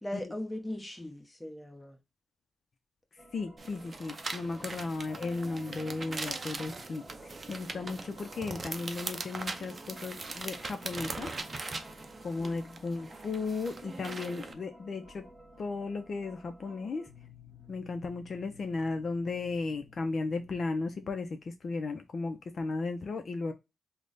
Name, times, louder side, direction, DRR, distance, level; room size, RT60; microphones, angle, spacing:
voice 1, 0.0-2.0 12.4-12.8, left 1 dB, 10° left, 0.8 m, -39 dB
voice 2, 3.1-11.3 12.2-15.3 15.6-17.1 17.7-23.5, left 3 dB, 55° left, 0.4 m, -35 dB
sound 1, 3.2-21.2, left 1 dB, 10° right, 1.5 m, -55 dB
sound 2, 3.6-14.5, right 3 dB, 35° right, 0.5 m, -41 dB
3.2 x 2.1 x 3.8 m
cardioid pair, 95°, 0 cm